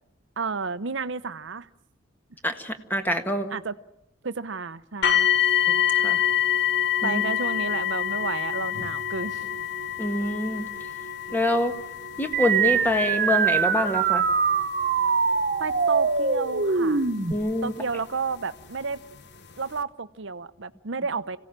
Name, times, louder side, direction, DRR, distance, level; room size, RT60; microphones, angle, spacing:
voice 1, 0.4-1.7 3.5-3.7 4.2-5.3 7.0-9.5 15.6-17.1 17.6-19.0 19.6-21.4, right 4 dB, 65° right, 14 dB, 0.8 m, -31 dB
voice 2, 2.4-3.5 5.7-6.2 7.0-7.2 10.0-10.7 11.3-11.7 12.2-14.2 17.3-17.7, left 1 dB, 10° left, 7 dB, 1.6 m, -26 dB
sound 1, 5.0-17.9 18.7-18.8 19.4-19.5, left 10 dB, 60° left, 1.3 m, -27 dB
sound 2, 12.3-17.3, right 5 dB, 50° right, 1.3 m, -23 dB
26.0 x 17.0 x 7.5 m, 0.89 s
head